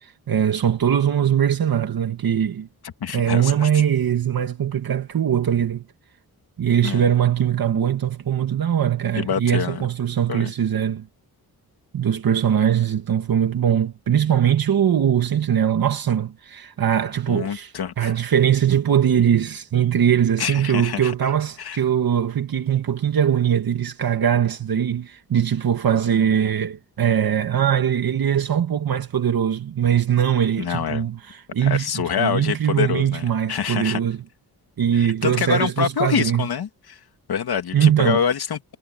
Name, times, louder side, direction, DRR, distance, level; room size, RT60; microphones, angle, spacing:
voice 1, 0.0-2.7 3.1-5.8 6.6-11.1 11.9-34.2 34.8-36.5 37.7-38.2, right 9 dB, 65° right, 1.8 m, -21 dB
voice 2, 3.0-3.7 6.8-7.0 9.1-9.9 10.3-10.5 17.3-18.1 20.4-21.1 21.6-21.8 30.6-31.1 31.6-34.0 34.9-37.0 37.3-38.8, left 7 dB, 75° left, 2.5 m, -26 dB
wide cardioid pair, 115°, 38 cm